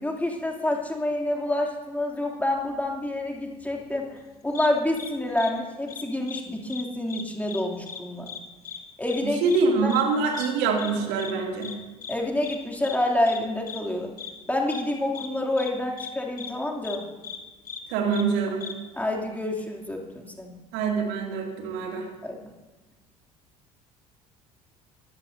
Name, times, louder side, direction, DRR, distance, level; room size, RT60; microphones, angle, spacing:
voice 1, 0.0-4.2 4.4-8.3 9.0-9.4 9.8-9.9 12.1-14.1 14.5-17.1 18.9-20.5 22.2-22.4, left 1 dB, 10° left, 0 dB, 2.7 m, -28 dB
sound 1, 4.5-4.7 5.0-5.1 5.4-5.5 5.9-6.4 6.7-6.8 7.1-7.6 7.9-8.0 8.3-8.4 8.6-8.8 9.1-9.2 9.5-9.6 9.9-10.0 10.3-10.5 10.8-10.9 11.2-11.3 11.6-11.7 12.0-12.1 12.4-12.6 12.8-13.0 13.3-13.4 13.7-13.8 14.2-14.3 14.7-14.8 15.1-15.3 15.6-15.7 16.0-16.1 16.4-16.5 16.8-17.0 17.2-17.4 17.6-17.8 18.1-18.2 18.6-18.7, left 8 dB, 80° left, 1.2 m, -38 dB
voice 2, 9.4-11.7 17.9-18.6 20.7-22.1, right 4 dB, 60° right, 1 dB, 2.6 m, -25 dB
22.5 x 15.0 x 2.7 m, 1.2 s
figure-of-eight pair, 60°, 19 cm